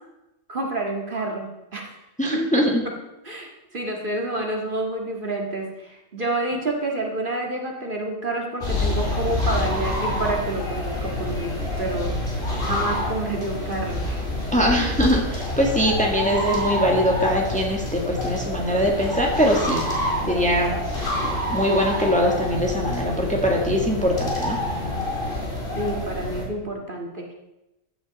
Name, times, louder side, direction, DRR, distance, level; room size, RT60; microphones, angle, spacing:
voice 1, 0.5-1.9 2.3-2.4 3.2-12.1 12.6-14.2 14.7-14.9 25.8-27.3, right 2 dB, 40° right, 0 dB, 2.0 m, -29 dB
voice 2, 2.2-2.8 14.5-19.8 20.3-20.7 21.5-24.6, equal, 5° left, 0 dB, 1.6 m, -22 dB
sound 1, 8.6-26.5, left 1 dB, 45° left, 3.3 m, -27 dB
15.0 x 10.0 x 4.1 m, 0.96 s
omnidirectional pair, 1.3 m